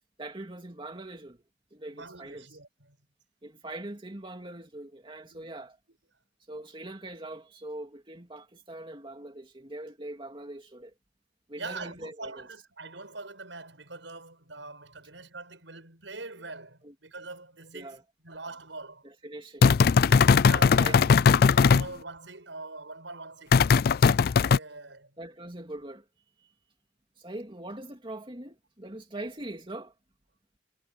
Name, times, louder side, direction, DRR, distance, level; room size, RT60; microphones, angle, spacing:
voice 1, 0.2-1.4 1.7-2.4 3.4-5.8 6.5-10.9 11.5-12.4 16.8-16.9 17.7-18.0 19.2-19.7 20.4-21.2 25.2-26.0 27.2-29.9, right 1 dB, 25° right, 2.6 m, -42 dB
voice 2, 1.9-3.0 5.3-5.5 11.6-19.0 20.1-21.1 21.6-23.6 24.5-25.1, right 3 dB, 85° right, 7.2 m, -43 dB
sound 1, 19.6-21.9 23.5-24.6, left 5 dB, 55° left, 0.4 m, -19 dB
head